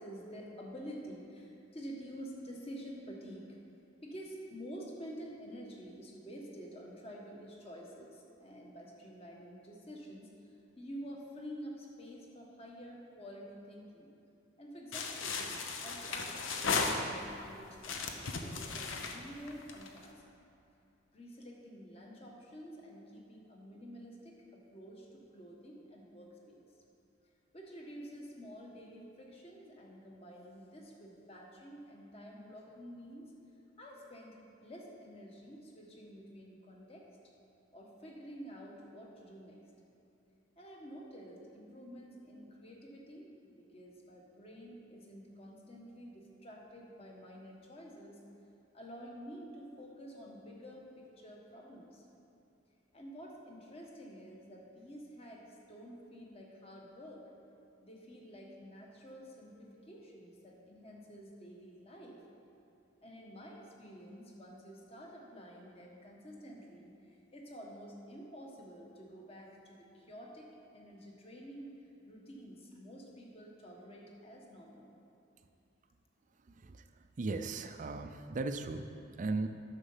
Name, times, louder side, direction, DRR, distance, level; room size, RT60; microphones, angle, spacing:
voice 1, 0.0-3.6 4.0-10.3 10.8-14.1 14.6-15.5 15.8-20.2 21.1-26.6 27.5-33.3 33.8-34.4 34.6-37.1 37.7-39.6 40.6-48.2 48.7-52.0 52.9-57.3 57.8-62.2 63.0-71.7 72.1-74.9, equal, 30° left, -1 dB, 1.3 m, -49 dB
sound 1, 14.9-17.4 17.8-20.0, left 4 dB, 75° left, 0.8 m, -36 dB
voice 2, 77.2-78.9 79.2-79.5, right 3 dB, 40° right, 8 dB, 0.4 m, -36 dB
9.7 x 6.6 x 5.6 m, 2.8 s
head